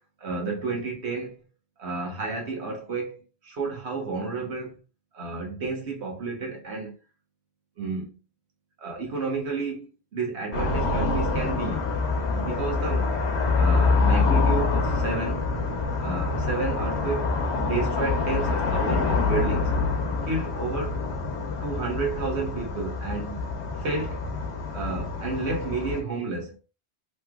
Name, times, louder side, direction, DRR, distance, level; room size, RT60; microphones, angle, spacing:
voice 1, 0.2-1.4 1.8-4.8 5.1-6.9 7.8-8.1 8.8-11.9 12.3-13.1 13.5-15.5 16.0-17.3 17.6-19.7 20.3-20.9 21.6-23.4 23.8-24.2 24.7-26.6, right 3 dB, 85° right, 1.3 m, -31 dB
sound 1, 10.5-26.0, left 4 dB, 90° left, 1.0 m, -26 dB
3.2 x 3.1 x 2.3 m
omnidirectional pair, 1.1 m